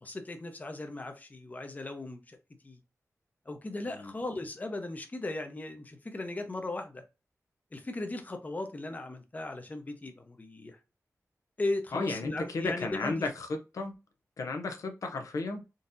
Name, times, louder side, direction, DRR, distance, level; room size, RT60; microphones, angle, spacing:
voice 1, 0.0-2.4 2.6-2.8 3.5-7.0 7.7-10.8 11.6-13.3, left 2 dB, 30° left, 0.6 m, -37 dB
voice 2, 11.9-14.0 14.4-15.6, left 3 dB, 85° left, 0.6 m, -34 dB
3.8 x 2.7 x 2.5 m
wide cardioid pair, 105°, 6 cm